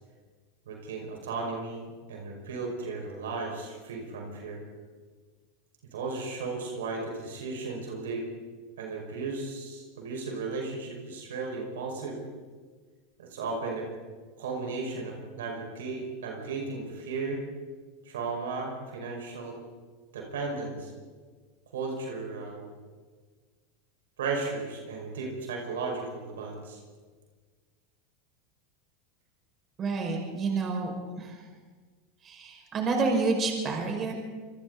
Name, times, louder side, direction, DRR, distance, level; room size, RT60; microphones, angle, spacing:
voice 1, 0.7-4.6 5.9-8.3 8.8-12.2 13.2-13.9 14.4-17.4 18.0-19.6 20.1-20.9 21.7-22.7 24.2-26.8, right 3 dB, 75° right, 0 dB, 5.6 m, -35 dB
voice 2, 29.8-31.4 32.2-34.1, right 3 dB, 35° right, 1 dB, 5.7 m, -29 dB
28.0 x 24.5 x 4.1 m, 1.5 s
hypercardioid pair, 90°, 0 cm